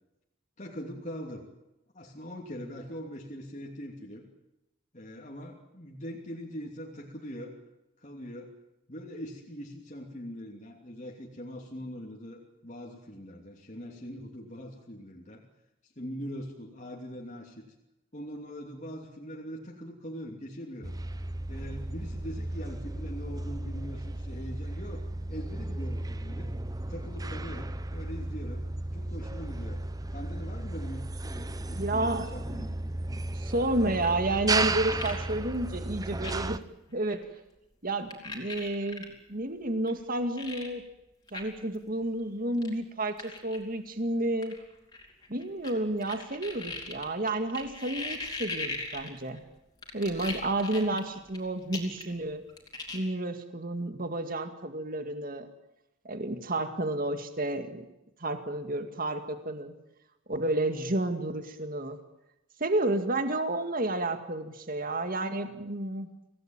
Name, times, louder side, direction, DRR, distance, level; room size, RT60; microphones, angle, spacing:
voice 1, 0.6-1.4 1.9-4.2 4.9-7.5 8.0-8.5 8.9-15.4 16.0-17.6 18.1-20.9 21.5-26.5 26.9-28.7 28.9-29.8 30.1-32.7, equal, 35° left, -1 dB, 2.9 m, -42 dB
sound 1, 20.8-36.6, right 2 dB, 15° right, 0.8 m, -34 dB
voice 2, 31.8-32.3 33.3-36.6 36.9-37.2 37.8-40.8 41.3-44.6 45.3-49.4 49.9-52.4 52.9-55.5 56.0-57.8 58.2-59.7 60.3-62.0 62.6-66.1, right 2 dB, 40° right, 8 dB, 2.1 m, -31 dB
sound 2, 33.9-35.2 35.5-35.6 36.2-36.6 37.0-37.2 38.1-39.1 39.9-40.0 40.4-40.7 41.3-41.4 41.7-41.8 42.6-42.7 43.2-43.6 44.4-45.7 46.0-49.4 49.8-51.4 51.7-52.2 52.5-53.0, left 3 dB, 20° left, 4.4 m, -39 dB
26.5 x 17.5 x 9.0 m, 0.93 s
head